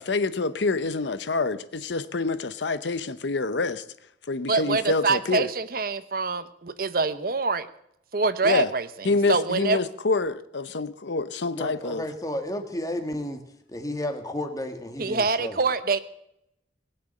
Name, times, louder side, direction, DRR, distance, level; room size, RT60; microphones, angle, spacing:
voice 1, 0.0-3.8 4.3-5.5 8.4-8.7 9.0-12.0, left 3 dB, 80° left, 0.8 m, -26 dB
voice 2, 4.5-7.7 8.1-9.8 15.0-16.0, right 4 dB, 55° right, 0.8 m, -25 dB
voice 3, 11.5-13.4 13.7-15.6, left 1 dB, 20° left, 1.6 m, -32 dB
20.0 x 6.8 x 8.8 m
head